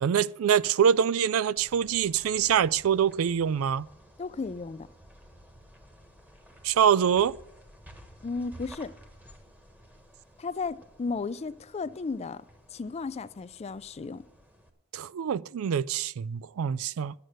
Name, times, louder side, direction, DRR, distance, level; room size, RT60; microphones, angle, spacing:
voice 1, 0.0-3.9 6.6-7.3 14.9-17.1, right 8 dB, 80° right, 0.4 m, -25 dB
sound 1, 1.6-14.7, equal, 10° right, 1.3 m, -53 dB
voice 2, 4.2-4.9 8.2-8.9 10.4-12.5 12.7-14.2, left 4 dB, 30° left, 0.4 m, -34 dB
11.0 x 7.7 x 6.5 m
head